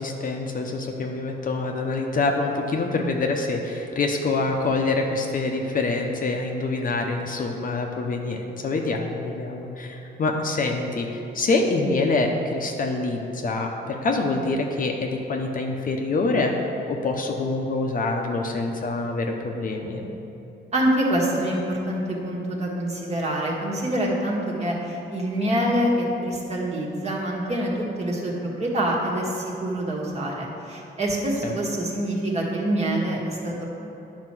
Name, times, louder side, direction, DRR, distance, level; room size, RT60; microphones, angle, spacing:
voice 1, 0.0-16.6 16.9-20.1 31.4-31.5, left 3 dB, 45° left, 2 dB, 0.8 m, -26 dB
voice 2, 20.7-33.6, right 1 dB, 35° right, -3 dB, 1.5 m, -26 dB
9.6 x 4.4 x 6.0 m, 2.9 s
cardioid pair, 130°, 19 cm